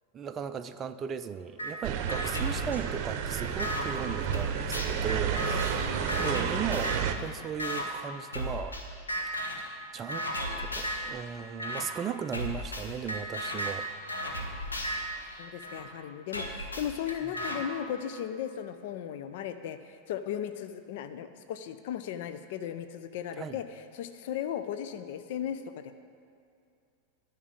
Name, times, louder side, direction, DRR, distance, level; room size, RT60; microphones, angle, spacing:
voice 1, 0.1-8.8 9.9-10.3 10.6-13.9 17.2-17.3 23.3-23.6, right 7 dB, 25° right, 9 dB, 0.4 m, -37 dB
sound 1, 1.6-1.7 2.1-3.8 4.3-7.1 7.6-7.8 8.3-8.8 9.1-9.7 10.1-11.1 11.6-11.8 12.3-15.8 16.3-17.6, equal, 75° left, 1.4 m, -35 dB
sound 2, 1.8-7.1, right 8 dB, 40° right, 0.8 m, -31 dB
voice 2, 5.4-6.1 15.4-23.6 23.9-25.9, left 9 dB, 50° left, 10 dB, 0.5 m, -36 dB
11.0 x 5.8 x 8.6 m, 2.4 s
figure-of-eight pair, 90°, 0 cm